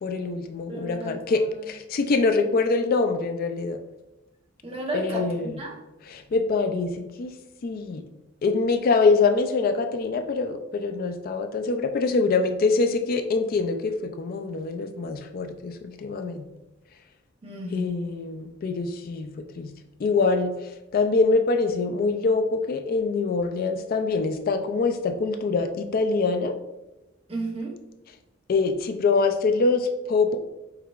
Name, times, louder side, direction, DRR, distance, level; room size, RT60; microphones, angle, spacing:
voice 1, 0.0-3.8 4.9-5.6 6.1-7.3 7.6-8.0 8.4-16.5 17.7-19.7 20.0-26.6 28.5-30.4, left 4 dB, 50° left, 6 dB, 0.3 m, -24 dB
voice 2, 0.7-1.2 4.6-5.8 17.4-18.1 27.3-27.8, right 2 dB, 30° right, 0 dB, 0.8 m, -33 dB
4.8 x 4.4 x 2.4 m, 0.99 s
head